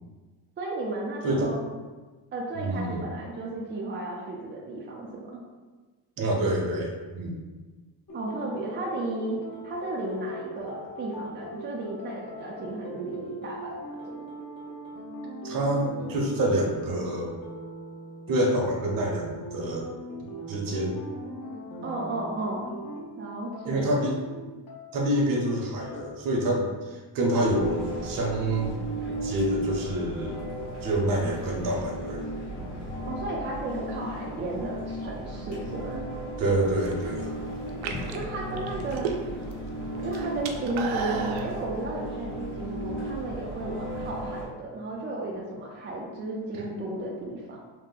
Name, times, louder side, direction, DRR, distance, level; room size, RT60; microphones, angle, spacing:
voice 1, 0.6-1.6 2.3-5.4 8.1-9.4 9.6-14.2 21.8-22.8 23.2-24.0 33.1-36.1 38.1-39.1 40.0-47.6, right 2 dB, 25° right, -3 dB, 0.3 m, -34 dB
voice 2, 1.2-1.5 2.6-3.0 6.2-7.4 15.4-17.3 18.3-19.9 20.5-21.0 23.6-24.1 24.9-28.9 29.2-30.4 30.8-32.2 36.4-37.3, right 1 dB, 50° right, 0 dB, 0.7 m, -27 dB
sound 1, 8.1-26.4, right 1 dB, 45° left, 0.8 m, -40 dB
sound 2, 27.4-44.5, right 1 dB, 70° left, 1.3 m, -35 dB
sound 3, 36.7-37.1 37.7-39.5 39.8-41.5, right 6 dB, 90° right, 0.5 m, -33 dB
2.7 x 2.1 x 3.7 m, 1.3 s
cardioid pair, 125°, 45 cm